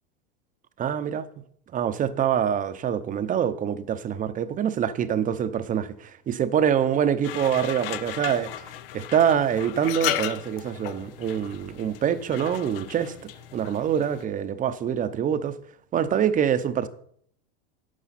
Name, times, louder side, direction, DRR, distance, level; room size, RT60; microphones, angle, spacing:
voice 1, 0.8-1.2 1.7-13.1 13.5-15.6 15.9-16.9, right 8 dB, 25° right, 0.8 m, -25 dB
sound 1, 7.2-14.2, left 13 dB, 70° left, 0.8 m, -35 dB
11.5 x 8.1 x 4.2 m
hypercardioid pair, 110°, 29 cm